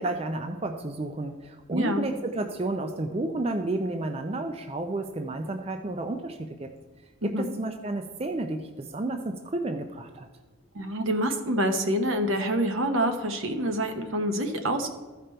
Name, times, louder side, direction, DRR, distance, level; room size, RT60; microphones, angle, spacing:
voice 1, 0.0-6.7 7.2-10.3, right 2 dB, 30° right, 6 dB, 0.4 m, -31 dB
voice 2, 1.7-2.0 7.2-7.5 10.7-14.9, right 1 dB, 75° right, 6 dB, 1.0 m, -27 dB
13.5 x 5.1 x 4.4 m, 1.3 s
head